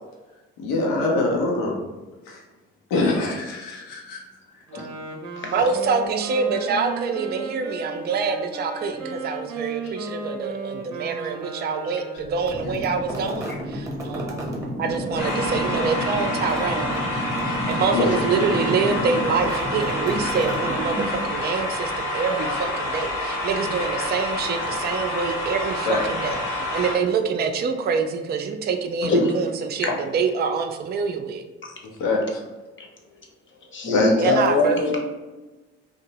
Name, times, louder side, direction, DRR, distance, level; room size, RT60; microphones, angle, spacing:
voice 1, 0.6-1.8 2.3-2.4 2.9-4.2 9.8-10.0 17.9-18.4 25.9-26.0 32.0-32.4 33.9-34.1, left 2 dB, 85° left, -1 dB, 0.6 m, -24 dB
Wind instrument woodwind instrument, 4.6-12.5, right 3 dB, 80° right, 0.6 m, -35 dB
voice 2, 5.5-14.5 14.8-17.0 17.5-26.4 26.7-31.4 34.2-34.8, right 5 dB, 35° right, 6 dB, 0.4 m, -26 dB
sound 1, 12.3-21.3, equal, 10° right, 0.8 m, -30 dB
sound 2, 15.2-26.9, left 1 dB, 65° left, 0.9 m, -28 dB
voice 3, 33.7-35.0, left 2 dB, 40° left, 0 dB, 0.8 m, -22 dB
2.6 x 2.1 x 2.9 m, 1.2 s
hypercardioid pair, 50°, 31 cm